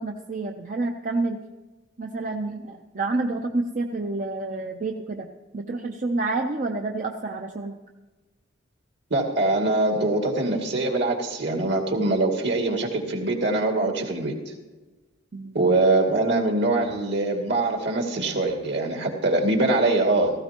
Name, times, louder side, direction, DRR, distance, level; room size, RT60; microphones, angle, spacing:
voice 1, 0.0-1.4 2.0-5.3 5.5-7.8 15.3-15.8, right 2 dB, 45° right, 3 dB, 0.7 m, -29 dB
voice 2, 9.1-14.3 15.5-20.3, right 2 dB, 65° right, 2 dB, 2.3 m, -23 dB
17.0 x 15.0 x 2.9 m, 1.2 s
head